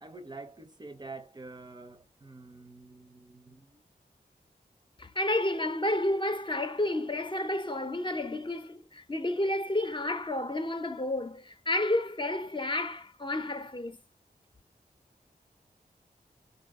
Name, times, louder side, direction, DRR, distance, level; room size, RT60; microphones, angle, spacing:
voice 1, 0.0-3.8, right 3 dB, 25° right, 0.6 m, -47 dB
voice 2, 5.0-14.0, left 1 dB, 30° left, 0.7 m, -31 dB
4.0 x 2.4 x 3.6 m
wide cardioid pair, 100°, 16 cm